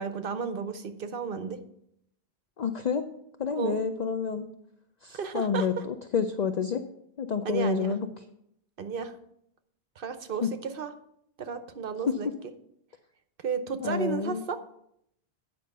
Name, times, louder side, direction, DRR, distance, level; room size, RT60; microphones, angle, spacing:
voice 1, 0.0-1.6 3.6-3.8 5.1-5.8 7.4-8.0 8.8-9.1 10.0-10.9 11.4-12.3 13.4-14.6, right 6 dB, 60° right, 9 dB, 0.9 m, -33 dB
voice 2, 2.6-3.0 3.4-4.5 5.0-6.8 7.2-8.1 10.4-10.5 13.8-14.4, left 6 dB, 50° left, 8 dB, 0.5 m, -29 dB
9.2 x 5.3 x 6.6 m, 0.75 s
omnidirectional pair, 1.1 m